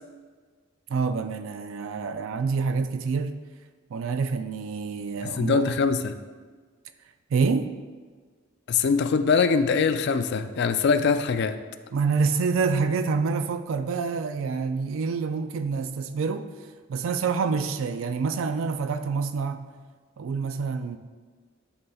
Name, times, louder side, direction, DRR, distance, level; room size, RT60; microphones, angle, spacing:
voice 1, 0.9-3.4 3.9-5.8 7.3-7.7 11.9-16.5 16.9-19.7 20.2-21.0, right 5 dB, 70° right, 0.4 m, -27 dB
voice 2, 5.2-6.1 8.7-11.6, left 5 dB, 55° left, 0.3 m, -23 dB
11.0 x 4.1 x 2.3 m
head